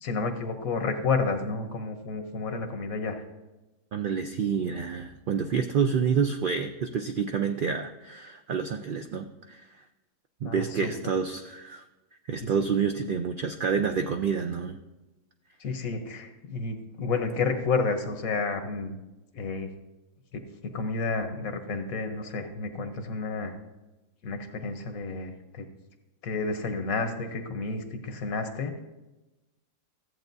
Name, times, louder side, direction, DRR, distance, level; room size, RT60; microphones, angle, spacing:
voice 1, 0.0-3.2 10.4-10.9 12.4-12.5 15.6-18.9 19.3-19.7 20.3-20.4 20.7-23.5 24.2-25.6 26.2-28.8, left 4 dB, 85° left, 7 dB, 1.4 m, -30 dB
voice 2, 3.9-9.7 10.4-11.8 12.3-14.8, right 6 dB, 75° right, 6 dB, 0.4 m, -28 dB
14.0 x 8.0 x 2.6 m, 1.1 s
omnidirectional pair, 1.4 m